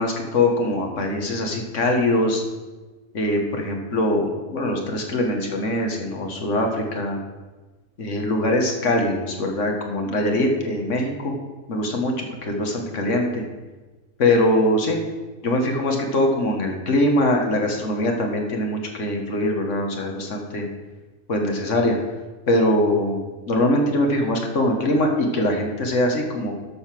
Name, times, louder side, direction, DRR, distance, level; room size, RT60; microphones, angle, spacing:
voice 1, 0.0-2.4 3.1-7.2 8.0-11.3 11.7-13.4 14.2-15.0 15.4-20.7 21.3-22.0 22.5-26.5, left 1 dB, 50° left, 2 dB, 1.8 m, -22 dB
13.0 x 5.5 x 6.0 m, 1.2 s
omnidirectional pair, 1.6 m